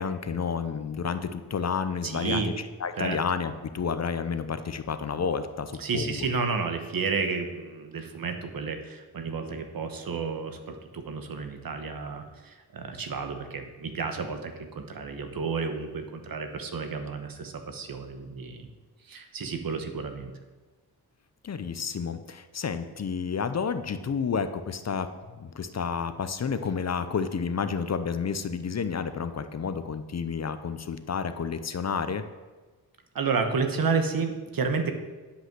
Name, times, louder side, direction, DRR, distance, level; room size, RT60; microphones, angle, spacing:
voice 1, 0.0-2.5 2.8-6.3 21.4-32.2, left 6 dB, 40° left, 10 dB, 0.7 m, -30 dB
voice 2, 2.0-2.5 3.0-3.2 5.8-18.7 19.0-20.3 33.1-34.9, right 5 dB, 60° right, 6 dB, 1.2 m, -31 dB
10.0 x 5.6 x 6.0 m, 1.3 s
cardioid pair, 75°, 39 cm